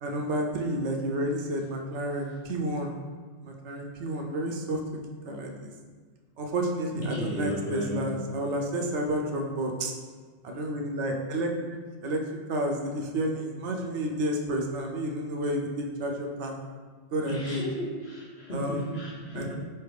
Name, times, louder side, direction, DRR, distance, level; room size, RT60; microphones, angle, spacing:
voice 1, 0.0-2.9 3.4-4.8 5.2-5.7 6.4-9.9 10.4-12.2 12.5-16.5 17.1-17.6 18.5-18.9 19.3-19.5, right 1 dB, 75° right, 2 dB, 0.9 m, -30 dB
voice 2, 6.9-8.1 17.2-19.5, equal, 60° left, -4 dB, 1.2 m, -34 dB
4.6 x 3.3 x 3.3 m, 1.5 s
omnidirectional pair, 1.2 m